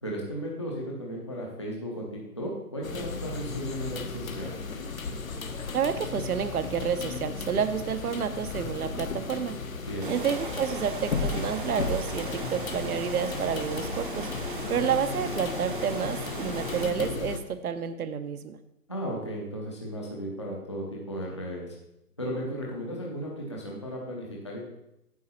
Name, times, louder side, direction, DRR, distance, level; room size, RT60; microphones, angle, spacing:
voice 1, 0.0-4.6 9.8-10.1 18.9-21.7 22.2-24.7, equal, 20° left, -3 dB, 0.7 m, -35 dB
sound 1, 2.8-17.4, left 4 dB, 55° left, 1.1 m, -35 dB
voice 2, 5.7-9.5 10.1-14.3 14.7-18.6, right 7 dB, 65° right, 10 dB, 0.8 m, -29 dB
sound 2, 10.0-16.9, right 3 dB, 30° right, 0.8 m, -38 dB
9.4 x 6.4 x 4.3 m, 0.85 s
hypercardioid pair, 165°, 48 cm